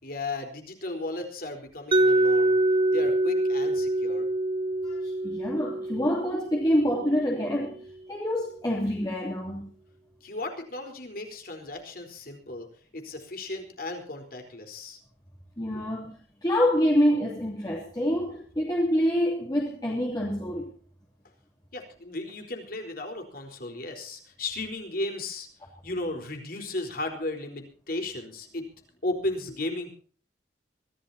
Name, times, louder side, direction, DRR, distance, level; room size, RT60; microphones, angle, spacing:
voice 1, 0.0-2.6 2.9-4.3 10.2-12.7 12.9-15.0 15.7-15.8 21.7-25.5 25.8-28.6 29.0-29.9, left 2 dB, 55° left, 4.3 m, -35 dB
Mallet percussion, 1.9-7.8, right 1 dB, 30° right, 0.8 m, -25 dB
voice 2, 4.8-7.8 8.1-9.7 15.6-16.1 16.4-20.7, equal, 25° left, 3.0 m, -26 dB
24.5 x 15.5 x 2.8 m
head